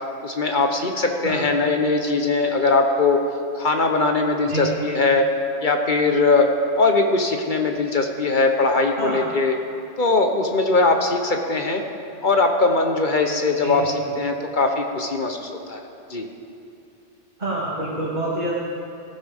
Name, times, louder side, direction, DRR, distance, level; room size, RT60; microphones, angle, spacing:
voice 1, 0.2-3.2 3.5-5.3 5.6-6.5 6.8-9.5 10.0-11.8 12.2-15.8 16.1-16.3, left 3 dB, 40° left, 3 dB, 1.0 m, -20 dB
voice 2, 13.6-14.1 17.4-18.5, right 2 dB, 35° right, -10 dB, 2.8 m, -27 dB
17.5 x 14.5 x 3.6 m, 2.7 s
omnidirectional pair, 1.3 m